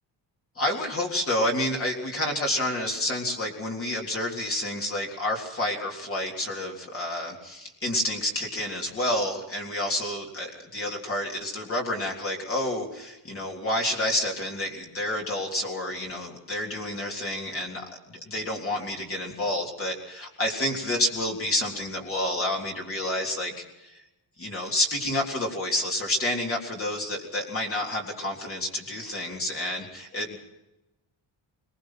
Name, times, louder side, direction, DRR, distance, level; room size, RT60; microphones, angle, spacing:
voice 1, 0.6-23.5 23.8-24.0 24.4-30.4, left 1 dB, 30° left, 0 dB, 3.6 m, -29 dB
22.0 x 21.5 x 5.8 m, 0.95 s
cardioid pair, 175°, 45 cm